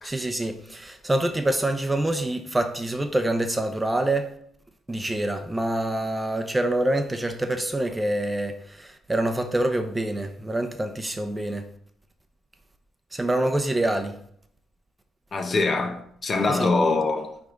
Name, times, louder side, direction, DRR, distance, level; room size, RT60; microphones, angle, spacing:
voice 1, 0.0-4.3 4.9-11.7 13.1-14.2 16.5-16.7, right 1 dB, 15° right, 0.7 m, -26 dB
voice 2, 15.3-17.4, left 3 dB, 40° left, 0.9 m, -24 dB
9.3 x 3.5 x 3.9 m
cardioid pair, 90°, 0 cm